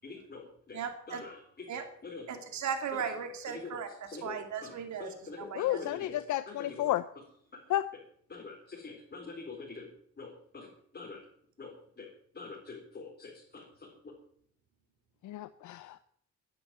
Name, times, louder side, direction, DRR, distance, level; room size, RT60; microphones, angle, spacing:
voice 1, 0.0-0.8 1.1-1.3 2.0-2.2 3.5-3.6 4.1-4.4 5.0-6.9 8.3-9.9 10.2-11.2 11.6-12.1 12.3-13.9, left 4 dB, 35° left, -3 dB, 4.6 m, -45 dB
voice 2, 0.7-1.2 1.7-1.9 2.3-5.8, right 7 dB, 70° right, 6 dB, 2.5 m, -37 dB
voice 3, 5.5-7.0 7.7-7.8 15.2-16.0, left 14 dB, 75° left, 14 dB, 0.7 m, -31 dB
11.0 x 9.8 x 9.2 m, 0.63 s
cardioid pair, 90°, 30 cm